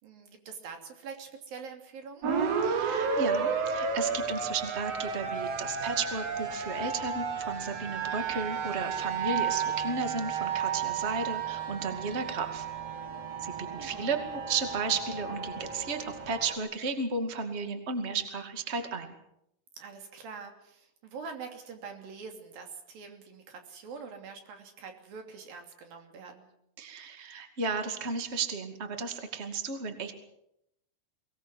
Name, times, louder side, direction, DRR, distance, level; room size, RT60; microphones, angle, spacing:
voice 1, 0.0-2.3 13.8-14.1 19.8-26.5, right 5 dB, 85° right, 4 dB, 4.7 m, -45 dB
sound 1, 2.2-16.6, right 6 dB, 50° right, 2.9 m, -32 dB
voice 2, 2.6-12.7 13.4-19.1 26.8-30.1, right 4 dB, 20° right, 6 dB, 2.1 m, -34 dB
23.0 x 19.5 x 7.7 m, 0.80 s
omnidirectional pair, 4.0 m